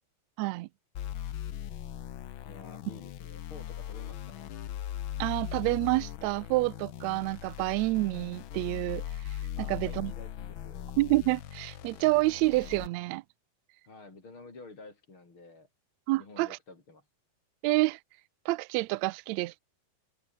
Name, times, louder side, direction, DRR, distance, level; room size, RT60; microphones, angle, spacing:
voice 1, 0.4-0.7 5.2-9.0 9.7-10.1 11.0-13.2 16.1-16.5 17.6-18.0 18.4-19.6, right 20 dB, 80° right, 1.6 m, -28 dB
sound 1, 0.9-12.9, left 11 dB, 85° left, 1.1 m, -39 dB
voice 2, 2.5-4.5 9.6-10.9 13.8-15.7 16.1-17.1, left 3 dB, 40° left, 5.6 m, -50 dB
omnidirectional pair, 3.7 m